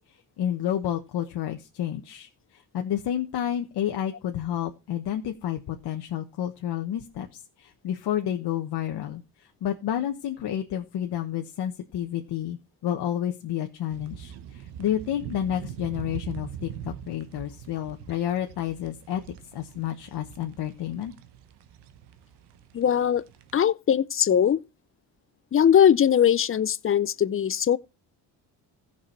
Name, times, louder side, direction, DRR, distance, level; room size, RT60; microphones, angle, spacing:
voice 1, 0.4-19.2 19.5-21.1, left 10 dB, 70° left, 1.2 m, -30 dB
sound 1, 13.9-23.6, right 10 dB, 80° right, 1.1 m, -43 dB
voice 2, 22.7-23.2 23.5-24.6 25.5-27.8, left 9 dB, 35° left, 0.5 m, -20 dB
15.0 x 6.1 x 4.5 m
cardioid pair, 75°, 40 cm